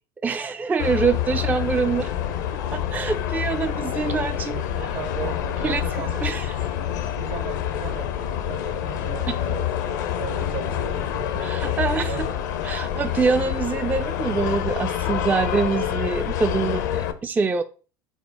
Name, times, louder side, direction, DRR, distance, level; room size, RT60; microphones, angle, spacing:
voice 1, 0.2-2.1 2.5-4.6 4.8-4.9 5.6-6.6 9.3-9.4 11.4-12.3 12.6-17.6, right 5 dB, 15° right, 0.3 m, -25 dB
sound 1, 0.8-17.1, left 10 dB, 70° left, 0.5 m, -27 dB
voice 2, 4.5-6.3 7.1-12.5, right 7 dB, 65° right, 1.2 m, -37 dB
5.4 x 2.0 x 4.7 m
hypercardioid pair, 70°, 10 cm